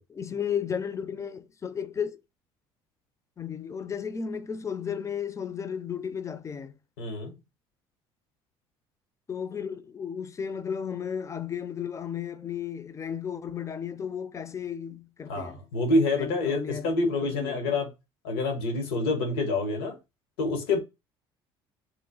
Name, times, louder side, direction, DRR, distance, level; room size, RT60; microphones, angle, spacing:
voice 1, 0.1-2.2 3.4-6.7 9.3-15.6 16.2-16.9 17.2-17.7, left 7 dB, 25° left, 0.4 m, -34 dB
voice 2, 7.0-7.3 15.3-17.9 18.2-20.0 20.4-20.8, left 2 dB, 85° left, 1.0 m, -27 dB
3.0 x 2.1 x 3.8 m
supercardioid pair, 75°, 12 cm